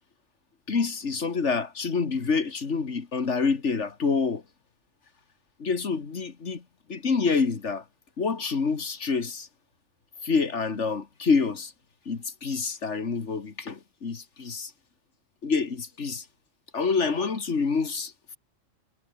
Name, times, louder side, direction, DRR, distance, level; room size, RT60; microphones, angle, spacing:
voice 1, 0.7-4.4 5.6-6.6 6.9-7.8 8.2-9.5 10.2-11.7 12.1-14.7 15.4-16.2 16.7-18.4, left 5 dB, 70° left, 2.2 m, -27 dB
omnidirectional pair, 1.3 m